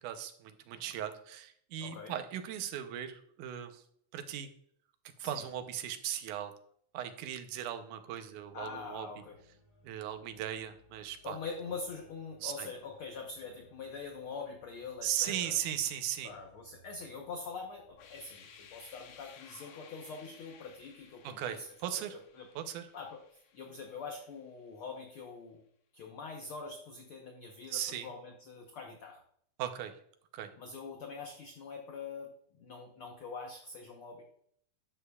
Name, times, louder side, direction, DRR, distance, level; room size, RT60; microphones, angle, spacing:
voice 1, 0.0-3.8 4.1-4.5 5.2-6.5 6.9-9.1 9.8-11.4 12.4-12.7 15.0-16.3 21.2-22.2 22.6-22.9 27.7-28.1 29.6-29.9 30.3-30.5, right 10 dB, 80° right, 8 dB, 2.2 m, -37 dB
voice 2, 1.8-2.1 5.2-5.4 8.5-9.4 11.2-15.6 16.2-21.7 21.9-22.0 22.3-22.5 22.9-23.2 23.5-25.6 25.9-29.2 30.6-32.3 32.6-34.2, left 4 dB, 65° left, 1 dB, 1.3 m, -44 dB
sound 1, 8.4-19.3, equal, 10° right, 2.1 m, -65 dB
sound 2, 17.9-24.8, left 7 dB, 80° left, 2.6 m, -58 dB
11.5 x 7.7 x 2.3 m, 0.66 s
omnidirectional pair, 3.6 m